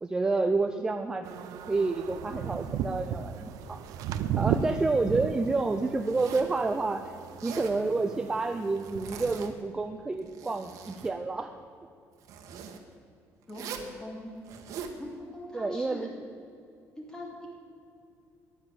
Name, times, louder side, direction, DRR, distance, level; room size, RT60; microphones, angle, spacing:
voice 1, 0.0-3.8 4.4-7.0 7.4-11.5 15.5-16.1, right 3 dB, 10° right, 7 dB, 0.5 m, -29 dB
sound 1, 1.2-9.5, right 8 dB, 85° right, 0.8 m, -35 dB
Zipper (clothing), 6.0-6.6 7.2-7.8 8.8-9.7 10.1-11.1 12.2-12.8 13.5-13.9 14.4-15.0, right 7 dB, 70° right, 1.7 m, -42 dB
voice 2, 13.5-14.3 15.0-16.1 17.0-17.5, left 1 dB, 10° left, -1 dB, 3.0 m, -42 dB
14.5 x 11.0 x 7.9 m, 2.5 s
cardioid pair, 180°, 6 cm